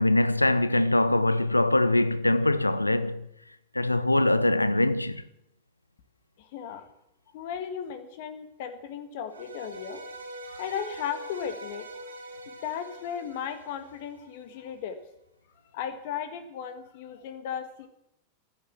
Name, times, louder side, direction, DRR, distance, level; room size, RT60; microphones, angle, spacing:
voice 1, 0.0-3.3 3.7-5.2, left 1 dB, 85° left, 0.7 m, -23 dB
voice 2, 6.4-6.8 7.3-10.0 10.5-12.2 12.4-15.0 15.7-17.9, left 8 dB, 50° left, 1.5 m, -36 dB
sound 1, 9.3-14.5, right 1 dB, 75° right, 2.2 m, -44 dB
14.0 x 10.5 x 7.4 m
figure-of-eight pair, 90°, 0 cm